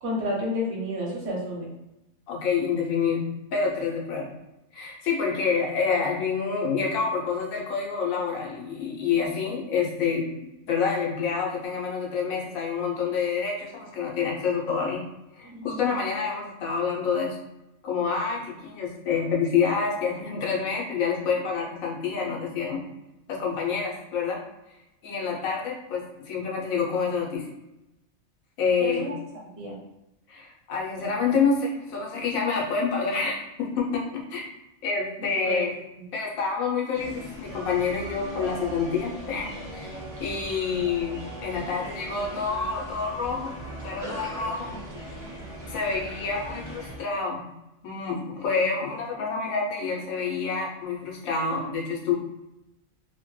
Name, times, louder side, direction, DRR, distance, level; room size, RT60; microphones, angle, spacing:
voice 1, 0.0-1.7 15.4-16.1 28.8-29.1 29.6-29.8 35.2-35.6 36.0-36.1, equal, 60° right, -3 dB, 1.1 m, -31 dB
voice 2, 2.3-3.2 3.5-4.3 4.7-15.0 15.3-17.4 17.8-22.8 23.3-24.4 25.0-27.5 28.6-29.1 30.3-34.4 34.8-35.7 36.1-39.9 40.2-43.5 43.8-44.7 45.7-47.5 47.8-52.1, left 5 dB, 90° left, -1 dB, 1.1 m, -27 dB
sound 1, 36.9-47.0, right 1 dB, 20° right, 0.6 m, -39 dB
2.8 x 2.1 x 3.1 m, 0.91 s
omnidirectional pair, 1.4 m